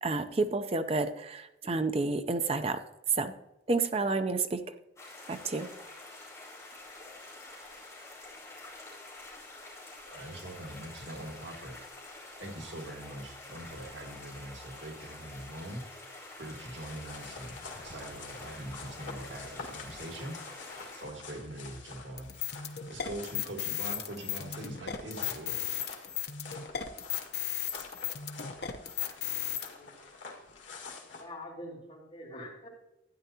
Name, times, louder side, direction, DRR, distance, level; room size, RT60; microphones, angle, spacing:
voice 1, 0.0-2.8 3.1-3.3 3.7-4.7 5.3-5.7, right 3 dB, 30° right, 9 dB, 0.5 m, -30 dB
sound 1, 5.0-21.0, left 2 dB, 15° left, 3.3 m, -48 dB
voice 2, 10.1-15.8 16.4-17.6 17.8-22.3 22.7-25.8, right 1 dB, 80° right, 1 dB, 1.7 m, -43 dB
sound 2, 16.8-31.2, left 4 dB, 85° left, 1.8 m, -47 dB
sound 3, 22.2-29.7, left 10 dB, 60° left, 0.8 m, -35 dB
voice 3, 29.7-30.4 31.2-32.7, left 1 dB, 35° left, -5 dB, 3.8 m, -45 dB
12.5 x 9.2 x 2.8 m, 0.93 s
head